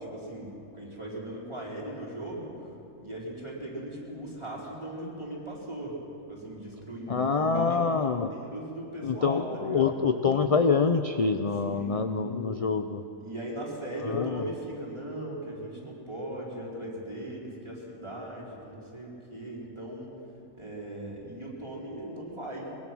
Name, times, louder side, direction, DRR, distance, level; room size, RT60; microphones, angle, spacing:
voice 1, 0.0-6.0 6.3-8.0 8.3-9.9 11.6-12.0 13.2-20.2 20.5-22.8, right 1 dB, 20° right, -5 dB, 4.8 m, -39 dB
voice 2, 7.1-8.3 9.0-13.0 14.1-14.4, left 5 dB, 40° left, 7 dB, 0.5 m, -26 dB
24.0 x 22.5 x 6.3 m, 2.9 s
omnidirectional pair, 1.5 m